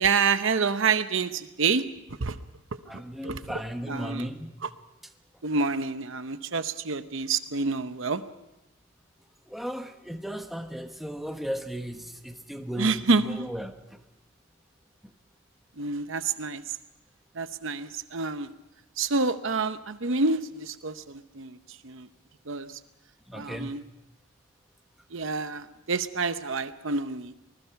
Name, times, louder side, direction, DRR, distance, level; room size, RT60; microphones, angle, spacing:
voice 1, 0.0-1.9 2.2-2.4 3.2-3.5 3.9-4.3 4.6-4.7 5.4-8.2 12.8-13.5 15.8-16.8 17.3-18.5 19.0-22.1 22.5-22.8 23.3-23.8 25.1-27.3, right 4 dB, 60° right, 11 dB, 0.8 m, -28 dB
voice 2, 2.9-4.6 9.5-14.0 23.3-23.7, equal, ahead, 5 dB, 1.1 m, -36 dB
25.5 x 20.0 x 5.8 m, 0.90 s
head